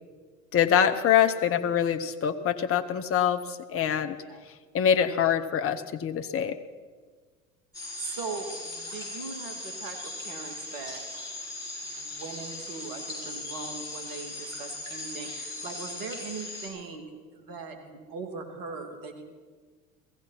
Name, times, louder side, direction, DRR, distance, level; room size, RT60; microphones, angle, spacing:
voice 1, 0.5-4.2 4.7-6.6, left 9 dB, 35° left, 8 dB, 0.9 m, -24 dB
sound 1, 7.7-16.7, left 2 dB, 10° left, 6.9 m, -39 dB
voice 2, 8.0-11.0 11.8-17.0 17.3-19.2, right 4 dB, 55° right, 5 dB, 2.5 m, -40 dB
16.0 x 15.5 x 5.8 m, 1.5 s
figure-of-eight pair, 70°, 41 cm